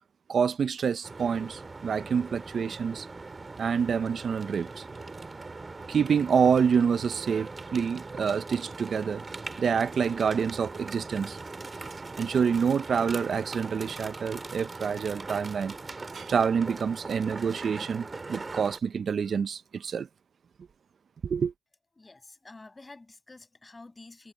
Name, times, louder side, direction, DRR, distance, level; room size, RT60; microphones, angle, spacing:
voice 1, 0.3-3.1 3.6-4.9 5.9-9.2 9.6-11.4 12.2-15.7 16.0-18.0 18.3-20.1 21.2-21.5, right 6 dB, 50° right, 0.5 m, -27 dB
sound 1, 1.0-18.8, right 3 dB, 25° right, 2.5 m, -41 dB
voice 2, 22.0-24.3, left 3 dB, 20° left, 6.2 m, -49 dB
cardioid pair, 90°, 0 cm